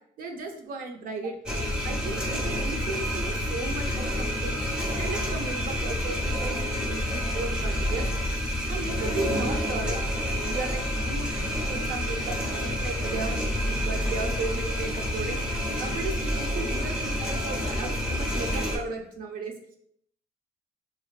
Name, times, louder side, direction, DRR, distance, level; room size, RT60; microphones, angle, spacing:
voice 1, 0.2-1.4 1.8-4.7 5.0-8.4 8.7-10.0 10.4-15.4 15.8-19.8, right 3 dB, 55° right, 4 dB, 0.5 m, -35 dB
sound 1, 1.5-18.8, equal, 5° right, 0.5 m, -28 dB
2.6 x 2.3 x 2.2 m, 0.68 s
cardioid pair, 110°, 17 cm